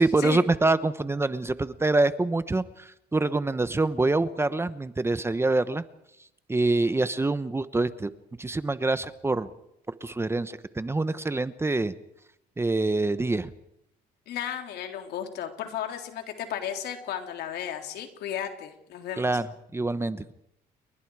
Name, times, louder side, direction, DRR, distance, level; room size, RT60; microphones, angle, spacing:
voice 1, 0.0-5.8 6.5-8.1 8.4-9.5 10.0-11.9 12.6-13.5 19.2-19.5 19.7-20.3, right 2 dB, 15° right, 13 dB, 1.0 m, -25 dB
voice 2, 14.3-19.3, left 9 dB, 75° left, 5 dB, 3.5 m, -34 dB
29.5 x 23.0 x 4.9 m, 0.78 s
cardioid pair, 110°, 17 cm